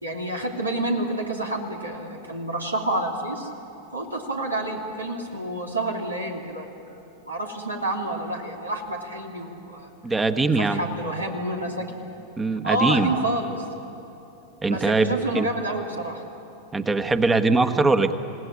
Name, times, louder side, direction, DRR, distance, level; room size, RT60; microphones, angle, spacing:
voice 1, 0.0-3.5 3.9-6.7 7.3-9.9 10.6-11.9 12.6-13.6 14.6-16.2, right 1 dB, 80° right, 0 dB, 2.9 m, -28 dB
voice 2, 10.0-10.8 12.4-13.1 14.6-15.5 16.7-18.1, right 3 dB, 15° right, 9 dB, 1.4 m, -21 dB
29.0 x 18.0 x 9.9 m, 2.9 s
figure-of-eight pair, 90°, 0 cm